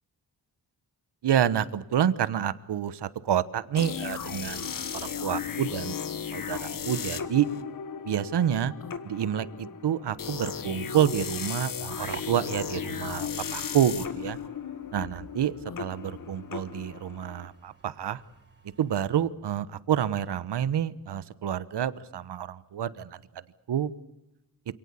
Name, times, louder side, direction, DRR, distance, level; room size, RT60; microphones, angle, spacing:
voice 1, 1.2-4.7 5.0-7.5 8.0-8.7 9.0-14.4 14.9-15.5 15.8-18.2 18.8-23.2 23.7-23.9, right 10 dB, 70° right, 16 dB, 1.2 m, -28 dB
sound 1, 3.8-17.5, left 7 dB, 50° left, 1.5 m, -36 dB
sound 2, 11.7-19.3, right 3 dB, 25° right, 4.6 m, -50 dB
27.5 x 18.5 x 8.4 m, 0.91 s
wide cardioid pair, 160°, 42 cm